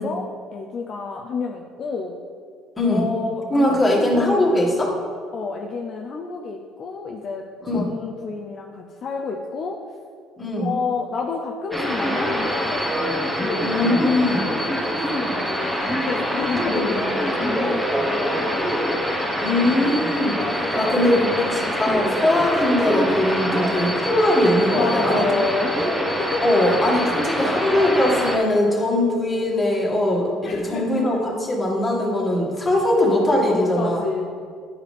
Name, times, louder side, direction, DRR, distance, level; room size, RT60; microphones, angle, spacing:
voice 1, 0.0-2.2 2.9-4.4 5.3-7.4 7.7-9.8 10.6-12.9 13.4-18.8 20.6-21.5 24.7-26.7 27.0-27.1 30.4-30.9 32.7-34.2, left 4 dB, 50° left, 1 dB, 0.5 m, -30 dB
voice 2, 2.8-3.1 3.5-4.9 7.6-7.9 10.4-10.7 13.6-14.4 16.7-17.0 19.4-25.3 26.4-34.0, left 1 dB, 20° left, -3 dB, 2.0 m, -21 dB
sound 1, 11.7-28.4, equal, 5° right, 1.4 m, -24 dB
10.5 x 4.9 x 3.4 m, 2.2 s
supercardioid pair, 80°, 0 cm